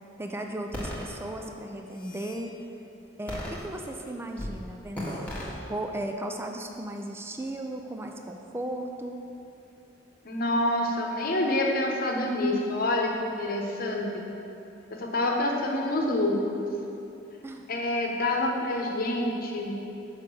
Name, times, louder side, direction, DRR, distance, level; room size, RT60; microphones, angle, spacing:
voice 1, 0.2-2.5 3.2-9.2 17.4-17.7, right 1 dB, 10° right, 3 dB, 0.4 m, -36 dB
sound 1, 0.7-1.0 1.7-2.4 3.3-4.0 4.4-4.6 4.9-5.5, left 1 dB, 5° left, 1.4 m, -36 dB
voice 2, 10.2-14.2 14.9-16.7 17.7-19.7, left 1 dB, 50° left, 1 dB, 1.0 m, -27 dB
6.4 x 5.1 x 6.8 m, 2.8 s
head